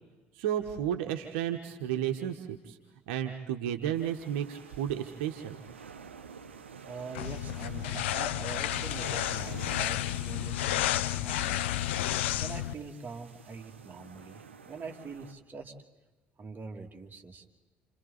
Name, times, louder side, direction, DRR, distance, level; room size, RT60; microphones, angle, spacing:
voice 1, 0.3-2.8 3.1-5.6, right 10 dB, 75° right, 5 dB, 1.3 m, -32 dB
sound 1, 3.9-15.3, right 6 dB, 90° right, 0.9 m, -49 dB
voice 2, 6.8-10.9 11.1-11.7 12.0-15.7 16.4-17.4, right 4 dB, 30° right, 1 dB, 2.8 m, -44 dB
sound 2, 7.2-12.7, left 13 dB, 80° left, 0.6 m, -31 dB
30.0 x 28.0 x 4.1 m, 1.2 s
hypercardioid pair, 55°, 6 cm